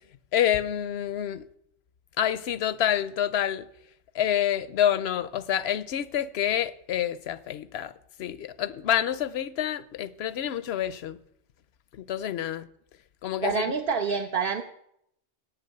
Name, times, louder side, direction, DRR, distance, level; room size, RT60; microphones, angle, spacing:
voice 1, 0.3-1.5 2.2-3.7 4.1-7.9 8.2-11.2 11.9-12.7 13.2-13.7, left 10 dB, 70° left, 0.8 m, -27 dB
voice 2, 13.4-14.6, right 5 dB, 55° right, 1.0 m, -27 dB
9.9 x 8.8 x 6.6 m
omnidirectional pair, 1.2 m